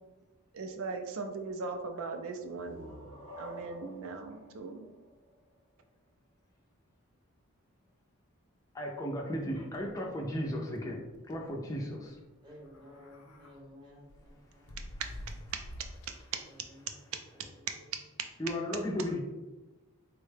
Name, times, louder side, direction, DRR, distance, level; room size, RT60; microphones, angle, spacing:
voice 1, 0.5-2.9 3.4-4.9, right 3 dB, 70° right, 5 dB, 0.4 m, -39 dB
sound 1, 2.3-5.9, right 1 dB, 90° right, 0.9 m, -49 dB
voice 2, 8.7-12.2 18.4-19.2, equal, 15° left, -1 dB, 0.3 m, -35 dB
sound 2, 9.4-10.4 10.7-10.8 11.1-11.3 12.5-13.6 14.1-16.4, left 1 dB, 80° left, 0.5 m, -48 dB
voice 3, 12.4-15.0 16.4-17.0 17.3-18.0, left 1 dB, 20° right, -3 dB, 0.8 m, -55 dB
3.6 x 2.1 x 3.2 m, 1.1 s
head